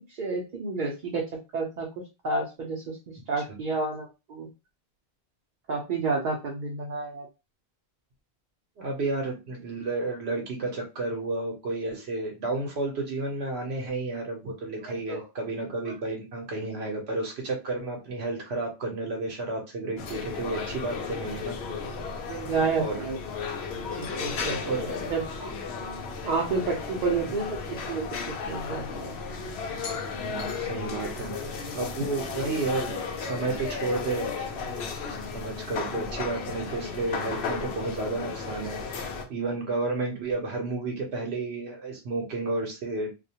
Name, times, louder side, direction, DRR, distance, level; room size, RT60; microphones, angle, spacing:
voice 1, 0.2-1.2 1.5-1.9 2.2-4.5 5.7-7.3 14.8-15.2 15.9-16.0 22.3-23.2 24.0-25.5 26.2-27.6 27.9-28.0 28.5-29.2, right 4 dB, 55° right, -1 dB, 0.6 m, -30 dB
voice 2, 8.8-21.6 22.8-23.0 24.6-25.0 30.1-31.4 31.7-34.3 35.1-43.1, right 3 dB, 80° right, 0 dB, 0.9 m, -32 dB
sound 1, 20.0-39.2, left 5 dB, 80° left, 0.8 m, -34 dB
2.4 x 2.1 x 2.7 m, 0.27 s
omnidirectional pair, 1.1 m